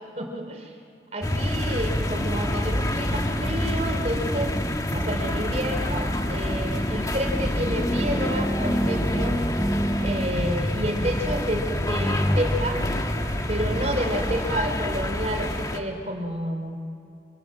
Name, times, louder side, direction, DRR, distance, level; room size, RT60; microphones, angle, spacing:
voice 1, 0.2-0.7 1.1-4.6 4.9-9.4 10.0-12.8 13.5-16.8, equal, 40° right, 3 dB, 3.8 m, -30 dB
sound 1, 1.2-15.8, left 1 dB, 20° left, 1.6 m, -26 dB
29.0 x 26.0 x 7.7 m, 2.4 s
head